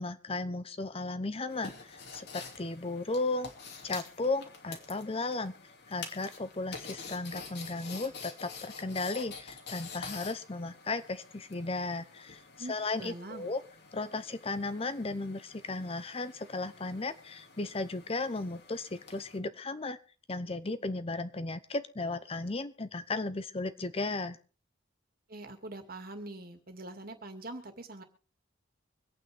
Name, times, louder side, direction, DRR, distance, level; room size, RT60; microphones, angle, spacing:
voice 1, 0.0-3.5 3.8-5.5 5.9-12.4 12.7-13.6 13.9-20.0 20.3-24.4, left 3 dB, 30° left, 12 dB, 0.7 m, -35 dB
sound 1, 1.5-19.4, left 4 dB, 60° left, 2.6 m, -48 dB
voice 2, 12.6-13.5 25.3-28.0, right 2 dB, 50° right, 7 dB, 2.2 m, -43 dB
25.0 x 9.0 x 3.4 m, 0.35 s
head